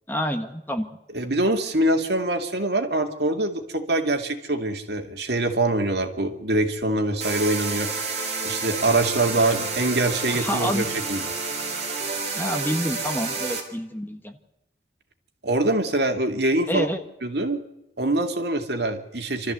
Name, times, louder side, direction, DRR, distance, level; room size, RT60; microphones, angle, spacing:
voice 1, 0.1-1.0 10.3-10.9 12.3-14.4 16.7-17.0, equal, 10° left, 6 dB, 1.4 m, -28 dB
voice 2, 1.1-7.9 8.4-11.3 15.4-16.9 17.2-17.6 18.0-19.5, right 2 dB, 70° right, 5 dB, 2.4 m, -24 dB
sound 1, 7.2-13.6, right 4 dB, 40° right, 3.7 m, -29 dB
27.0 x 13.5 x 8.1 m, 0.94 s
head